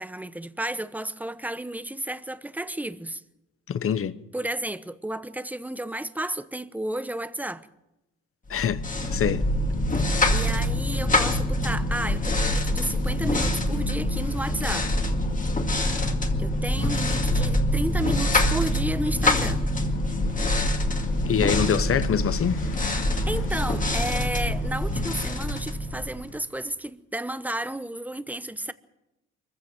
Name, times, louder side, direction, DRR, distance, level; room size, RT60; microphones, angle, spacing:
voice 1, 0.0-3.2 4.3-7.7 9.9-14.9 16.4-19.6 22.9-28.7, right 1 dB, 5° right, 1.0 m, -32 dB
voice 2, 3.7-4.2 8.5-8.8 9.1-9.4 21.2-22.6, left 8 dB, 45° left, 1.0 m, -24 dB
sound 1, 8.5-26.4, left 1 dB, 25° left, 2.3 m, -25 dB
sound 2, 19.8-26.7, left 3 dB, 90° left, 6.8 m, -50 dB
23.5 x 15.0 x 7.8 m
cardioid pair, 90°, 30 cm